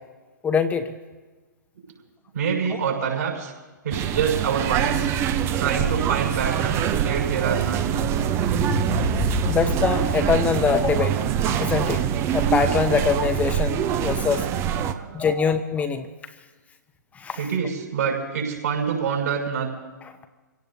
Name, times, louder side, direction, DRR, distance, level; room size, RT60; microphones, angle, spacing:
voice 1, 0.4-0.9 2.7-2.8 9.4-11.2 11.6-12.0 12.3-14.4 14.8-16.1 17.2-17.5 20.0-20.1, left 6 dB, 15° left, 7 dB, 1.0 m, -23 dB
voice 2, 2.3-3.5 3.8-5.1 5.6-7.9 14.6-14.7 14.9-15.3 17.4-19.7, right 7 dB, 60° right, -2 dB, 6.2 m, -26 dB
sound 1, 3.9-14.9, right 9 dB, 25° right, 0.8 m, -24 dB
sound 2, 7.6-12.6, left 1 dB, 30° left, 1.7 m, -31 dB
27.0 x 17.0 x 2.8 m, 1.3 s
figure-of-eight pair, 115°, 10 cm